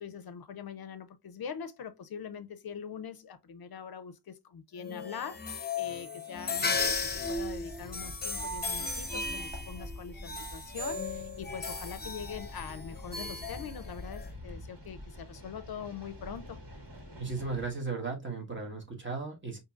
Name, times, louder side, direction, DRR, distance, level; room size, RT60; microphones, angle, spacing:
voice 1, 0.0-16.6, left 7 dB, 65° left, 0.5 m, -43 dB
sound 1, 4.8-14.3, left 4 dB, 25° left, 0.7 m, -36 dB
sound 2, 6.3-17.7, left 1 dB, 85° right, 1.6 m, -51 dB
sound 3, 6.7-14.6, left 2 dB, 5° left, 1.5 m, -46 dB
voice 2, 17.2-19.6, right 4 dB, 30° right, 1.4 m, -36 dB
5.1 x 2.8 x 2.3 m
wide cardioid pair, 110°, 40 cm